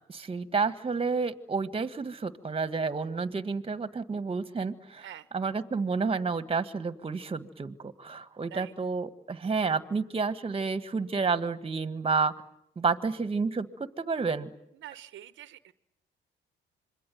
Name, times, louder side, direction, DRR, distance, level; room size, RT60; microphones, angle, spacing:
voice 1, 0.1-5.1 5.3-12.3 12.8-14.5, right 4 dB, 30° right, 13 dB, 1.6 m, -30 dB
voice 2, 5.0-5.3 8.5-8.7 14.8-15.7, right 11 dB, 75° right, 14 dB, 1.0 m, -46 dB
26.5 x 23.0 x 9.2 m, 0.73 s
cardioid pair, 90°, 20 cm